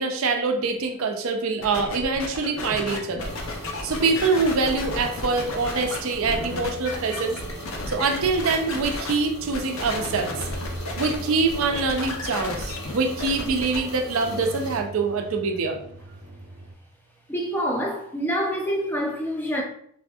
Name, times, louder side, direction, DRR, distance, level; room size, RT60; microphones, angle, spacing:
voice 1, 0.0-3.3 3.8-7.4 7.9-10.3 11.0-15.8, right 4 dB, 65° right, 0.4 m, -24 dB
sound 1, 1.6-9.1 9.5-11.2 11.5-13.8, left 2 dB, 65° left, 0.5 m, -33 dB
sound 2, 3.0-16.7, right 1 dB, 45° right, 0.7 m, -41 dB
sound 3, 3.2-14.8, left 1 dB, 85° left, 1.0 m, -40 dB
voice 2, 17.3-19.6, equal, 10° left, 0.4 m, -26 dB
3.4 x 2.6 x 2.3 m
head